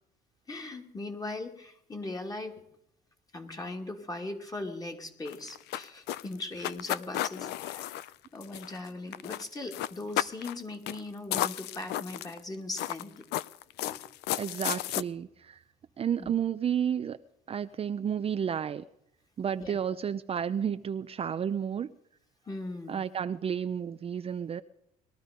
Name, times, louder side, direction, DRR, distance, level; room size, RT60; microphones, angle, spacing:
voice 1, 0.5-2.6 3.3-8.0 8.3-13.2 13.9-14.0 16.2-16.3 19.6-19.8 22.5-23.0, left 2 dB, 20° left, 2.5 m, -39 dB
sound 1, 5.3-8.9 9.1-9.5 9.7-10.6 10.9-11.0 11.3-12.4 12.8-15.0, left 14 dB, 80° left, 0.5 m, -33 dB
voice 2, 14.4-15.6 16.0-17.2 17.5-18.8 19.4-21.9 22.9-24.6, right 8 dB, 35° right, 0.5 m, -31 dB
20.5 x 13.0 x 5.2 m
cardioid pair, 110°, 17 cm